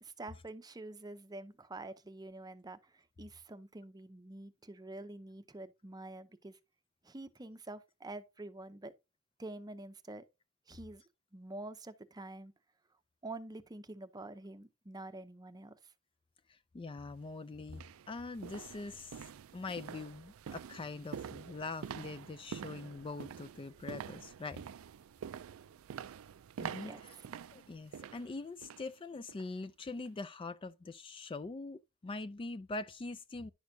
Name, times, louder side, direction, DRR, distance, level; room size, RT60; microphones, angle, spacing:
voice 1, 0.0-6.6 7.0-8.9 9.4-10.2 10.7-11.0 11.3-12.5 13.2-15.9 26.8-27.3, right 2 dB, 20° right, 0.7 m, -47 dB
voice 2, 16.5-24.6 26.6-27.2 27.5-33.5, left 3 dB, 25° left, 0.4 m, -43 dB
sound 1, 17.0-17.1 17.7-28.9 29.3-29.5 30.0-30.1, right 7 dB, 90° right, 0.4 m, -47 dB
10.5 x 6.4 x 2.7 m
head